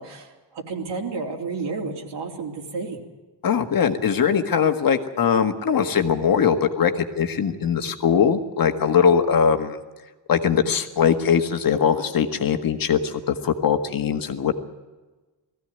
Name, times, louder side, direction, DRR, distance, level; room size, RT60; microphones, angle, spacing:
voice 1, 0.0-3.0, right 4 dB, 65° right, -1 dB, 3.5 m, -31 dB
voice 2, 3.4-9.8 10.3-14.5, left 7 dB, 50° left, 6 dB, 1.8 m, -21 dB
19.5 x 15.5 x 9.1 m, 1.2 s
cardioid pair, 135°, 45 cm